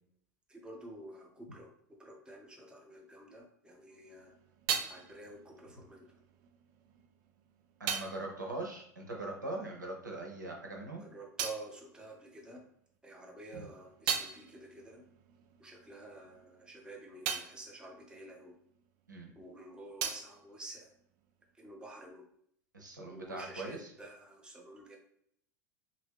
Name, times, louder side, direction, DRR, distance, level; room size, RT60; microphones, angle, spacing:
voice 1, 0.5-4.3 4.9-6.2 10.9-12.6 13.0-15.0 15.6-18.5 19.4-20.9 21.5-22.3 23.1-25.0, right 2 dB, 10° right, 0 dB, 0.8 m, -49 dB
sound 1, 3.8-9.9 10.1-12.8 13.2-19.3 19.5-21.5, right 8 dB, 45° right, 0.4 m, -41 dB
voice 2, 7.8-11.0 13.5-13.6 19.1-19.3 22.7-23.9, right 2 dB, 85° right, -1 dB, 0.7 m, -41 dB
3.0 x 2.5 x 3.4 m, 0.67 s
figure-of-eight pair, 80°, 10 cm